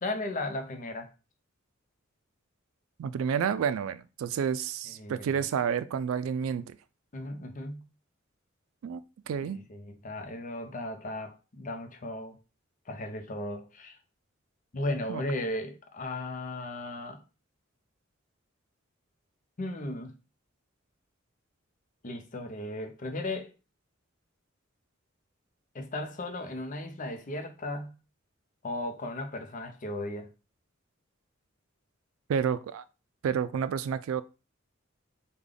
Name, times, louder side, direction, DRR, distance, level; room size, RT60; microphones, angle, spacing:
voice 1, 0.0-1.1 4.9-5.5 7.1-7.9 9.4-12.4 12.9-14.0 14.7-17.2 19.6-20.1 22.0-23.5 25.7-28.0 28.6-30.3, left 1 dB, 40° left, 0.6 m, -36 dB
voice 2, 3.0-6.8 8.8-9.0 9.3-9.6 15.1-15.2 32.3-32.8 33.2-34.2, right 7 dB, 85° right, 0.3 m, -30 dB
3.3 x 2.2 x 3.7 m
head